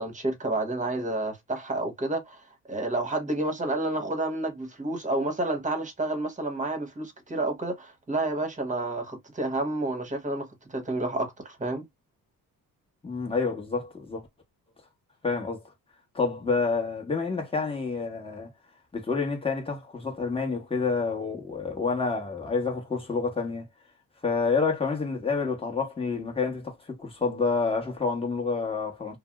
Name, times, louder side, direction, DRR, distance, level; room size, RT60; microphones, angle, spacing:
voice 1, 0.0-2.4 2.7-11.8, right 2 dB, 20° right, 1.1 m, -30 dB
voice 2, 13.0-14.2 15.2-15.7 16.1-18.5 18.9-23.7 24.2-29.2, left 4 dB, 15° left, 1.1 m, -28 dB
2.6 x 2.1 x 3.4 m
cardioid pair, 115°, 37 cm